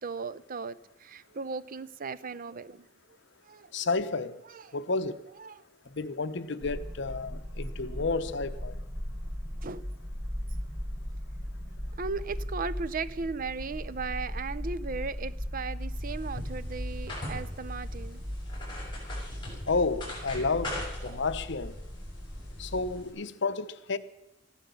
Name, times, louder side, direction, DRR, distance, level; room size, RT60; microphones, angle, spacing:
voice 1, 0.0-2.8 3.5-3.7 4.5-4.6 5.4-5.6 9.6-9.9 12.0-18.2, right 4 dB, 50° right, 0.6 m, -37 dB
voice 2, 3.7-4.3 4.7-5.2 5.9-8.7 19.7-21.7 22.6-24.0, left 3 dB, 70° left, 0.8 m, -31 dB
sound 1, 6.6-23.0, equal, 15° right, 1.3 m, -38 dB
sound 2, 16.0-23.1, left 1 dB, 25° left, 6.9 m, -42 dB
14.5 x 12.0 x 7.0 m
head